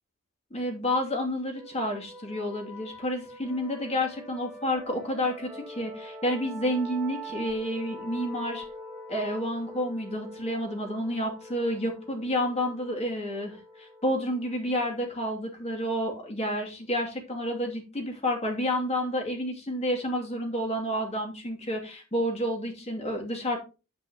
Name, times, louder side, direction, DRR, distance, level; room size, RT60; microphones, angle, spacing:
voice 1, 0.5-8.6 9.1-23.6, equal, 30° left, 1 dB, 2.6 m, -30 dB
sound 1, 1.5-16.9, equal, ahead, 3.3 m, -44 dB
9.6 x 8.6 x 2.9 m, 0.30 s
head